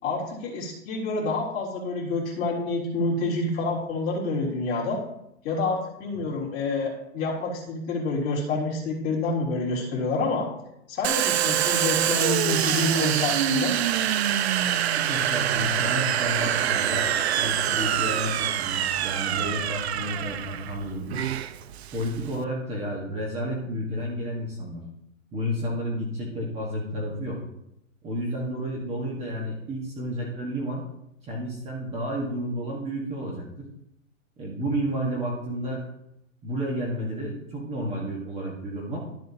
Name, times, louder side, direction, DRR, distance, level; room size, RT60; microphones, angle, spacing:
voice 1, 0.0-5.0 5.4-10.5 10.9-13.7, left 3 dB, 25° left, -5 dB, 3.3 m, -28 dB
Domestic sounds home sounds, 11.0-22.4, right 10 dB, 55° right, 0.7 m, -25 dB
voice 2, 14.6-17.1 17.4-21.3 21.9-24.8 25.3-27.4 28.0-30.8 31.2-33.7 34.4-35.8 36.4-39.0, equal, 15° right, -2 dB, 1.5 m, -31 dB
13.0 x 7.6 x 2.9 m, 0.82 s
hypercardioid pair, 145°, 40 cm